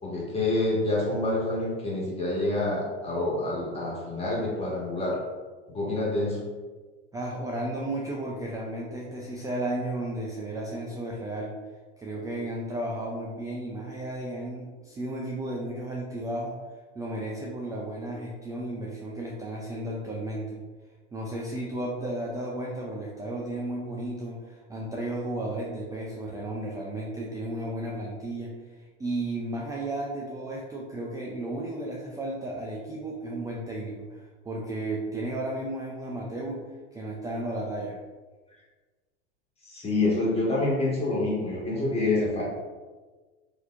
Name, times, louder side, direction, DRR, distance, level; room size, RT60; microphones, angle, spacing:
voice 1, 0.0-5.2 5.7-6.4 39.6-42.4, left 2 dB, 15° left, -5 dB, 1.4 m, -27 dB
voice 2, 7.1-11.5 12.0-16.6 17.0-20.6 21.1-28.6 29.0-38.0, right 1 dB, 10° right, -3 dB, 0.3 m, -34 dB
4.1 x 2.8 x 2.5 m, 1.3 s
hypercardioid pair, 100°, 34 cm